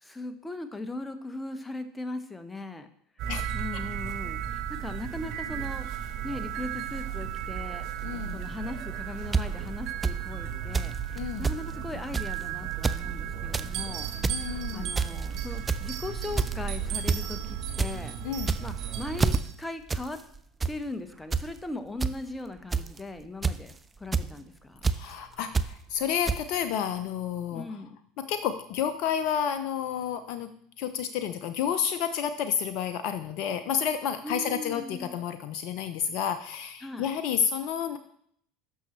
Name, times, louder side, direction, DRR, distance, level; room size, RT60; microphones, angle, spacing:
voice 1, 0.0-2.9 3.2-5.9 6.2-7.9 8.3-14.1 14.4-18.2 18.6-20.2 20.7-24.8 27.5-28.0 34.2-35.2 36.8-37.1, left 2 dB, 10° left, 8 dB, 1.0 m, -39 dB
sound 1, 3.2-19.4, right 8 dB, 55° right, 1.0 m, -34 dB
voice 2, 8.0-8.4 11.2-11.5 14.3-14.9 18.2-18.5 24.9-27.7 28.2-30.5 30.8-38.0, left 8 dB, 60° left, 9 dB, 0.5 m, -30 dB
sound 2, 9.3-9.4 10.0-10.1 10.7-10.9 11.2-11.3 11.4-11.6 12.1-12.3 12.7-13.0 13.4-13.7 14.1-14.4 15.0-15.3 15.7-15.9 16.4-16.6 17.1-17.2 17.5-17.9 18.4-18.8 19.2-19.4 19.9-20.0 20.3-20.7 21.3-21.4 22.0-22.1 22.7-23.0 23.4-23.7 24.1-24.3 24.8-25.0 25.5-25.7 26.3-26.4, right 4 dB, 20° right, 0.4 m, -26 dB
11.5 x 6.2 x 3.1 m, 0.65 s
hypercardioid pair, 80°, 0 cm